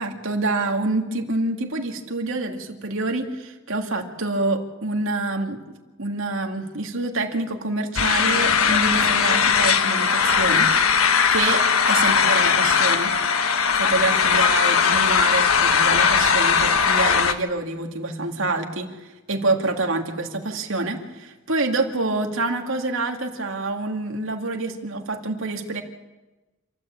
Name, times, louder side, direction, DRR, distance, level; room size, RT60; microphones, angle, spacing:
voice 1, 0.0-5.6 6.0-13.1 13.7-25.8, right 2 dB, 70° right, 2 dB, 2.5 m, -27 dB
sound 1, 8.0-17.3, left 6 dB, 85° left, 1.4 m, -19 dB
28.0 x 13.0 x 8.8 m, 1.1 s
head